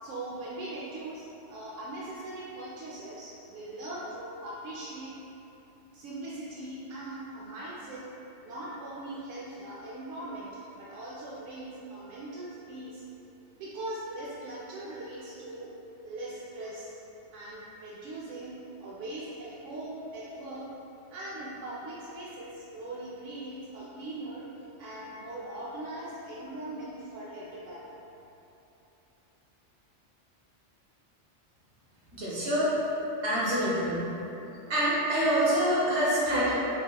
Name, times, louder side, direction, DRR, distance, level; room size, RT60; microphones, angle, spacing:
voice 1, 0.0-5.1 5.9-8.0 8.4-10.5 10.7-13.0 13.5-15.7 16.0-16.9 17.3-18.5 18.8-20.7 21.1-24.5 24.8-27.8, right 1 dB, 90° right, -7 dB, 0.9 m, -40 dB
voice 2, 32.1-32.8 33.2-34.1 34.7-36.5, equal, 70° right, -8 dB, 1.3 m, -26 dB
5.9 x 2.8 x 2.3 m, 3.0 s
omnidirectional pair, 1.2 m